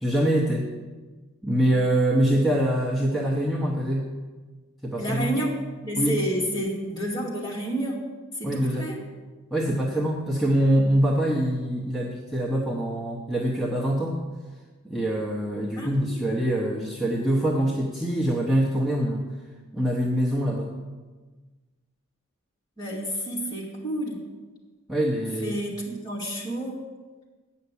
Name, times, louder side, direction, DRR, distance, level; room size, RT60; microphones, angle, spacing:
voice 1, 0.0-0.7 1.4-4.1 4.8-5.3 6.0-6.2 8.4-8.9 9.5-14.2 14.8-19.3 19.7-20.7 24.9-25.6, right 1 dB, ahead, -4 dB, 0.8 m, -24 dB
voice 2, 5.0-5.5 5.8-8.0 8.3-9.1 15.8-16.2 22.8-24.2 25.4-26.8, right 1 dB, 20° left, -4 dB, 2.3 m, -30 dB
9.1 x 5.8 x 8.3 m, 1.3 s
head